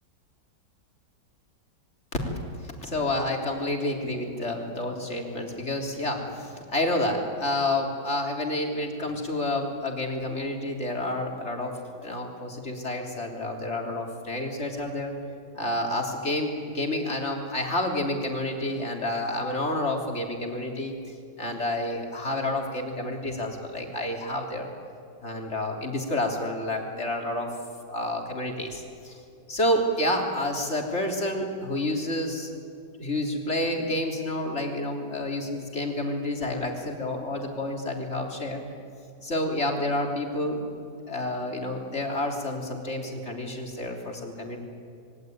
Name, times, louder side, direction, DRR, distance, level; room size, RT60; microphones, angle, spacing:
voice 1, 2.1-15.1 15.5-24.7 25.2-27.5 27.9-29.2 29.5-32.5 33.0-38.6 39.2-40.6 41.1-44.6, left 1 dB, 40° left, 1 dB, 3.7 m, -29 dB
26.5 x 22.5 x 9.4 m, 2.6 s
omnidirectional pair, 1.9 m